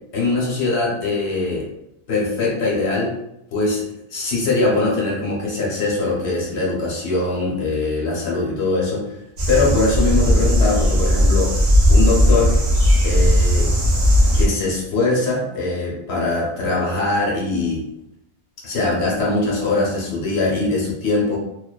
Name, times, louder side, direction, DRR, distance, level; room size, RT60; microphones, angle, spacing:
voice 1, 0.1-1.7 2.1-3.2 3.5-9.1 9.5-11.5 11.9-12.6 13.0-13.7 14.3-17.8 18.6-21.4, left 3 dB, 80° left, -3 dB, 1.1 m, -22 dB
sound 1, 9.4-14.5, equal, 50° right, 0.6 m, -16 dB
2.5 x 2.2 x 2.2 m, 0.82 s
omnidirectional pair, 1.1 m